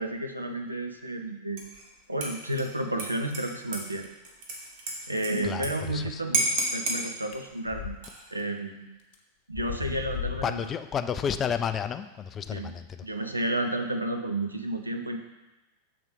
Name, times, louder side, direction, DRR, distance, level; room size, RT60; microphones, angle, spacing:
voice 1, 0.0-1.6 2.1-4.1 5.1-7.9 8.3-8.9 9.5-10.7 12.5-12.7 13.0-15.2, right 1 dB, 85° right, 5 dB, 0.6 m, -31 dB
Dishes pots and pans / Liquid, 1.6-1.9 2.2-5.7 6.0-6.1 6.3-7.0 7.9-8.4, right 2 dB, 50° right, 1.4 m, -31 dB
voice 2, 5.4-6.2 10.4-13.0, left 7 dB, 25° left, 10 dB, 0.3 m, -31 dB
sound 1, 7.3-8.0 8.4-8.5 9.1-9.2 9.5-10.7, left 10 dB, 50° left, 0.8 m, -35 dB
6.8 x 3.7 x 4.9 m, 1.1 s
figure-of-eight pair, 90°, 0 cm